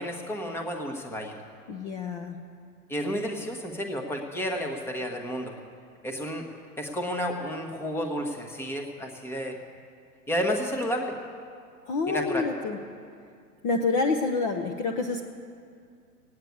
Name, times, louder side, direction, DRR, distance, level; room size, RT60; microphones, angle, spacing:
voice 1, 0.0-1.4 2.9-5.5 6.0-6.4 6.8-9.6 10.3-11.1 12.1-12.4, equal, 5° left, 3 dB, 1.1 m, -31 dB
voice 2, 1.7-2.4 11.9-12.8 13.6-15.2, left 3 dB, 25° left, 3 dB, 0.7 m, -27 dB
16.5 x 9.4 x 8.4 m, 2.3 s
hypercardioid pair, 145°, 48 cm